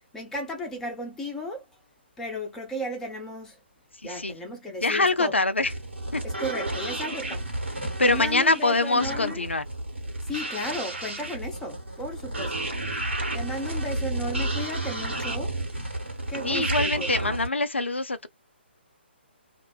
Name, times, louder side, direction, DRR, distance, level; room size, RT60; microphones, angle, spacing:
voice 1, 0.1-1.6 2.2-3.6 4.0-5.4 6.2-7.5 8.0-9.4 10.2-12.7 13.3-15.6 16.3-17.1, equal, 5° left, 0.7 m, -34 dB
voice 2, 4.8-5.7 6.1-6.2 8.0-9.6 16.4-18.3, left 2 dB, 80° left, 0.4 m, -24 dB
sound 1, 5.6-17.5, right 1 dB, 80° right, 1.3 m, -31 dB
2.5 x 2.1 x 2.3 m
figure-of-eight pair, 135°, 6 cm